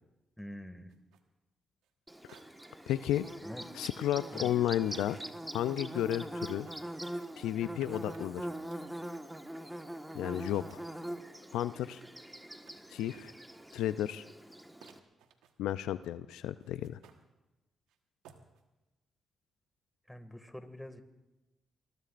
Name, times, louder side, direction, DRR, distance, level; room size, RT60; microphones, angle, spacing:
voice 1, 0.4-0.9 3.4-3.7 4.3-4.5 20.1-21.0, left 1 dB, 5° left, 8 dB, 2.1 m, -45 dB
sound 1, 0.9-1.2 1.8-1.9 2.3-2.9 3.2-3.4 4.9-5.4 6.2-9.1 10.0-10.1 10.2-10.9 11.9-12.2 12.7-12.8 13.1-13.7 14.3-14.4 14.8-15.9 16.6-17.2 17.9-18.0 18.2-18.6, right 7 dB, 90° right, 1.3 m, -59 dB
Bird / Buzz, 2.1-15.0, right 1 dB, 10° right, 1.5 m, -43 dB
voice 2, 2.9-3.3 3.7-5.2 5.5-6.7 7.4-8.5 10.1-10.8 11.5-12.0 12.9-13.3 13.7-14.2 15.6-17.0, left 12 dB, 85° left, 13 dB, 0.4 m, -32 dB
24.5 x 21.0 x 2.5 m, 1.0 s
supercardioid pair, 55°, 0 cm